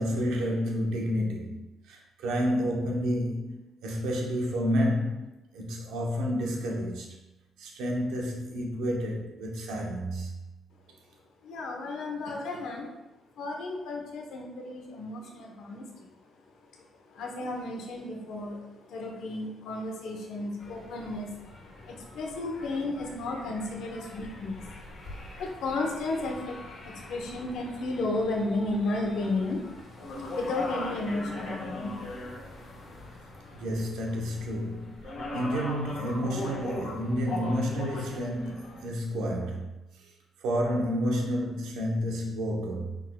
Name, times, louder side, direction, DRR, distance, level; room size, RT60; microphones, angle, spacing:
voice 1, 0.0-5.3 5.5-7.2 7.6-10.3 33.5-39.7 40.0-40.1 40.4-43.0, equal, 90° right, 0.9 m, -30 dB
voice 2, 11.4-12.9 13.4-16.1 16.8-16.9 17.1-24.7 25.3-29.6 30.3-32.1 32.4-32.5 32.9-33.0, left 2 dB, 80° left, 0.9 m, -33 dB
sound 1, 20.6-38.9, left 2 dB, 55° left, 1.2 m, -41 dB
5.9 x 3.6 x 2.3 m
cardioid pair, 90°, 0 cm